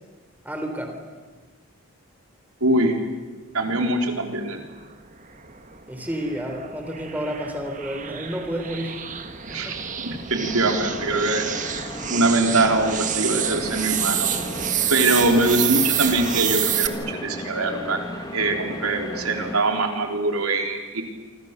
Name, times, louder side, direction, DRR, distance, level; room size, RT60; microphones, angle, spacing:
voice 1, 0.4-1.0 5.9-9.1 9.5-9.8, equal, 5° right, 4 dB, 3.7 m, -30 dB
voice 2, 2.6-3.0 3.5-4.6 9.5-11.5 12.0-14.3 14.9-18.0 18.3-21.0, right 2 dB, 80° right, 3 dB, 3.9 m, -23 dB
sound 1, 5.3-16.9, right 9 dB, 35° right, 1.6 m, -28 dB
sound 2, 10.4-19.6, equal, 20° left, 2.5 m, -35 dB
27.5 x 25.5 x 6.8 m, 1.3 s
head